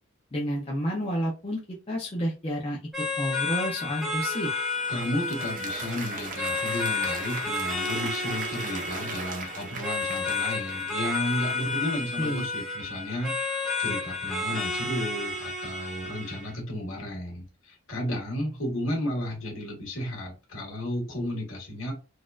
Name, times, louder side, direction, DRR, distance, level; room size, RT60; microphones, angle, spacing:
voice 1, 0.3-1.6 1.9-2.8 3.2-4.5 12.2-12.5, equal, 25° left, -3 dB, 0.6 m, -30 dB
sound 1, 2.9-16.5, left 3 dB, ahead, 1.0 m, -31 dB
Applause, 4.5-12.1, right 3 dB, 35° right, 0.6 m, -39 dB
voice 2, 4.9-21.9, left 1 dB, 60° left, -1 dB, 1.6 m, -33 dB
4.0 x 2.5 x 2.4 m, 0.31 s
head